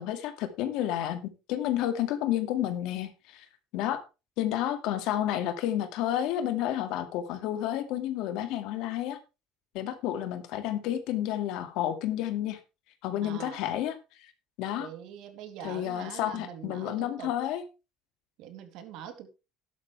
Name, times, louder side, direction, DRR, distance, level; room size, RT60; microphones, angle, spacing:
voice 1, 0.0-3.5 3.7-4.0 4.4-9.2 9.7-12.6 13.0-14.0 14.6-14.9 15.6-17.6, left 12 dB, 70° left, 9 dB, 2.1 m, -30 dB
voice 2, 13.2-13.7 14.8-17.3 18.4-19.3, right 9 dB, 70° right, 7 dB, 3.0 m, -43 dB
12.0 x 11.5 x 3.4 m, 0.29 s
cardioid pair, 135°, 0 cm